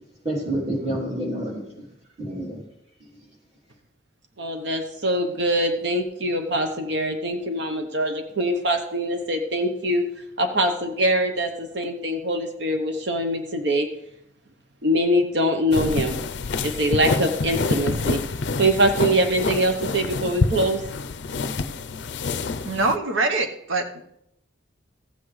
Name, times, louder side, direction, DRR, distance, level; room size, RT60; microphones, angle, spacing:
voice 1, 0.2-1.9 2.2-2.6, right 1 dB, 30° right, -3 dB, 2.8 m, -28 dB
voice 2, 4.4-10.1 10.4-13.9 14.8-16.2 16.6-18.2 18.6-20.8, right 1 dB, 60° right, 5 dB, 0.9 m, -23 dB
sound 1, 15.7-23.0, left 3 dB, 60° left, 0.5 m, -27 dB
voice 3, 22.6-24.0, right 3 dB, 90° right, 6 dB, 1.0 m, -24 dB
14.5 x 8.2 x 3.2 m, 0.78 s
head